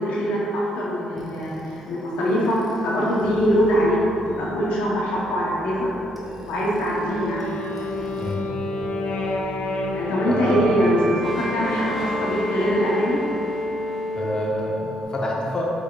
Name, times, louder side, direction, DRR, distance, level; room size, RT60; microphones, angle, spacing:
voice 1, 0.0-2.6 2.8-5.8 6.4-7.5 9.9-13.2, equal, 80° left, -6 dB, 0.7 m, -23 dB
sound 1, 1.2-8.3 8.6-15.0, left 1 dB, 5° right, 0.9 m, -33 dB
sound 2, 3.2-12.0, right 5 dB, 50° right, 0.5 m, -38 dB
Wind instrument woodwind instrument, 7.0-11.6, left 3 dB, 60° left, 0.4 m, -30 dB
voice 2, 10.2-10.7 14.2-15.6, left 1 dB, 30° left, -3 dB, 0.8 m, -28 dB
4.8 x 3.5 x 2.2 m, 2.7 s
supercardioid pair, 60°, 3 cm